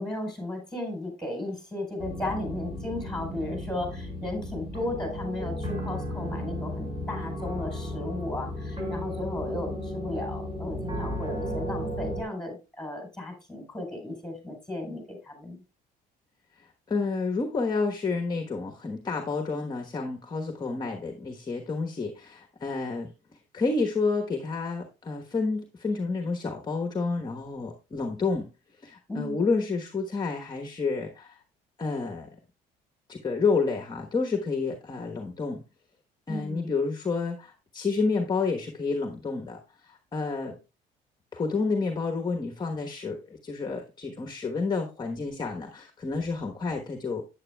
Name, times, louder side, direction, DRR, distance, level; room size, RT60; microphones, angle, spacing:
voice 1, 0.0-15.6 29.1-29.4 36.3-36.7, left 1 dB, 5° left, 2 dB, 4.5 m, -35 dB
sound 1, 2.0-12.2, equal, 30° right, 5.5 m, -34 dB
voice 2, 16.6-23.1 23.5-28.5 28.8-31.4 31.8-32.3 33.1-35.6 36.3-40.6 41.3-47.2, left 4 dB, 25° left, 3 dB, 1.2 m, -30 dB
9.6 x 8.7 x 2.3 m, 0.30 s
cardioid pair, 110°, 17 cm